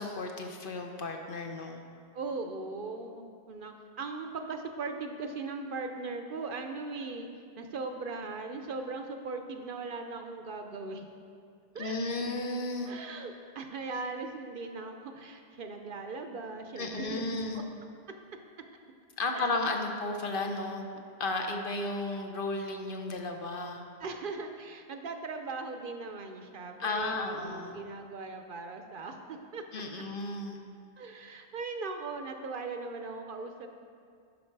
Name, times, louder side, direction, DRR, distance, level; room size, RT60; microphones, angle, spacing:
voice 1, 0.0-1.8 11.8-12.9 16.8-17.6 19.2-20.9 21.2-23.8 26.8-27.8 29.7-30.6, left 2 dB, 60° left, 3 dB, 0.9 m, -34 dB
voice 2, 2.1-7.3 7.6-11.1 11.7-12.0 12.9-17.6 19.3-19.5 24.0-29.6 31.0-33.7, right 3 dB, 60° right, 6 dB, 0.7 m, -39 dB
10.5 x 5.5 x 4.5 m, 2.3 s
omnidirectional pair, 1.1 m